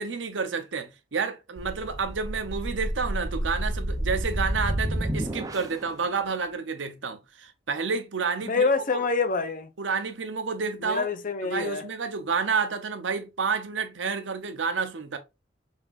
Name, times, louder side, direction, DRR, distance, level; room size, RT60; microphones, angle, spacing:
voice 1, 0.0-8.6 8.9-9.0 9.8-11.1 11.5-15.2, right 5 dB, 85° right, 0.8 m, -30 dB
sound 1, 1.6-5.9, right 1 dB, 20° right, 0.6 m, -30 dB
voice 2, 8.5-9.7 10.8-11.8, left 4 dB, 45° left, 0.6 m, -26 dB
5.5 x 3.6 x 2.5 m
head